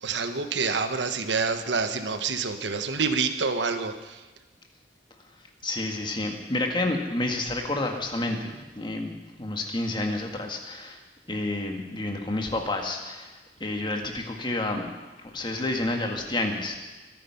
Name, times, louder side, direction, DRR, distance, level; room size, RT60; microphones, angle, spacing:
voice 1, 0.0-4.2, right 4 dB, 85° right, 8 dB, 1.2 m, -27 dB
voice 2, 5.6-11.0 11.3-13.3 13.6-14.9 15.2-16.8, left 2 dB, 25° left, 3 dB, 1.8 m, -29 dB
23.5 x 9.2 x 5.8 m, 1.2 s
head